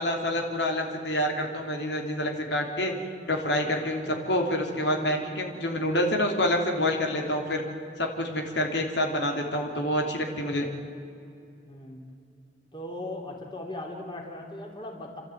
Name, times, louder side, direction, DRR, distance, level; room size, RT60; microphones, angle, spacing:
voice 1, 0.0-2.9 3.3-7.6 8.0-10.7, left 1 dB, 75° left, 2 dB, 3.1 m, -27 dB
voice 2, 11.6-12.0 12.7-15.2, left 1 dB, 25° left, 0 dB, 3.3 m, -38 dB
30.0 x 13.5 x 9.2 m, 2.5 s
head